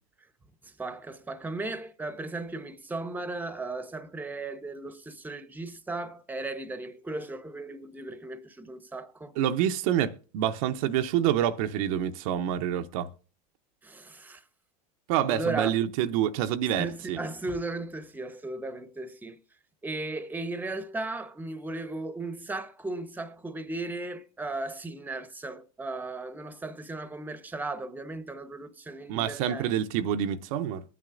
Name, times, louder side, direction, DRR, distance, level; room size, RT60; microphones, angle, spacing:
voice 1, 0.6-9.4 13.8-14.4 15.3-15.7 16.7-19.4 19.8-29.7, right 2 dB, 10° right, 0.9 m, -36 dB
voice 2, 9.4-13.1 15.1-17.2 29.1-30.8, right 10 dB, 65° right, 0.7 m, -27 dB
21.5 x 9.2 x 2.5 m
hypercardioid pair, 95°, 19 cm